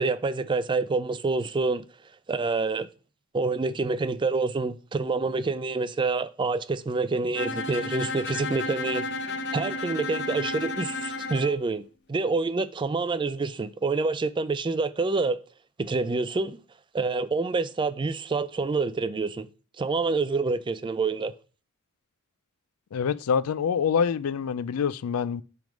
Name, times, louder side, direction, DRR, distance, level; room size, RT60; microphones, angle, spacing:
voice 1, 0.0-1.8 2.3-2.9 3.3-9.1 9.5-11.8 12.1-15.4 15.8-16.6 16.9-19.5 19.8-21.3, right 3 dB, 20° right, 0.3 m, -27 dB
Bowed string instrument, 7.4-11.6, left 2 dB, 55° left, 0.8 m, -32 dB
voice 2, 22.9-25.4, left 6 dB, 80° left, 0.4 m, -26 dB
9.2 x 3.5 x 5.1 m
head